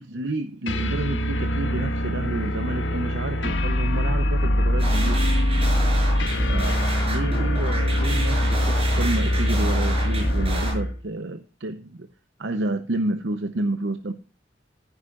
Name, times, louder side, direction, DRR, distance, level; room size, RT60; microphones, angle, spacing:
voice 1, 0.0-5.3 6.5-12.1 12.4-14.1, right 2 dB, 70° right, 0.9 m, -30 dB
sound 1, 0.7-11.0, left 1 dB, 85° left, 1.7 m, -23 dB
sound 2, 4.8-10.7, right 2 dB, 35° right, 6.2 m, -31 dB
14.5 x 9.9 x 2.5 m
head